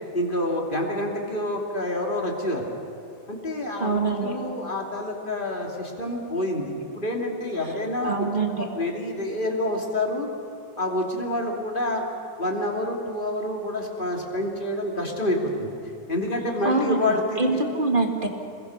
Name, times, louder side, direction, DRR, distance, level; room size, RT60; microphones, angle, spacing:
voice 1, 0.1-2.7 3.3-8.3 8.5-10.3 10.8-12.0 12.4-15.7 16.1-17.5, left 1 dB, 15° left, 0 dB, 2.8 m, -27 dB
voice 2, 3.8-4.3 8.0-8.6 16.6-18.3, right 3 dB, 20° right, 3 dB, 1.5 m, -24 dB
28.0 x 21.5 x 6.7 m, 2.9 s
omnidirectional pair, 3.5 m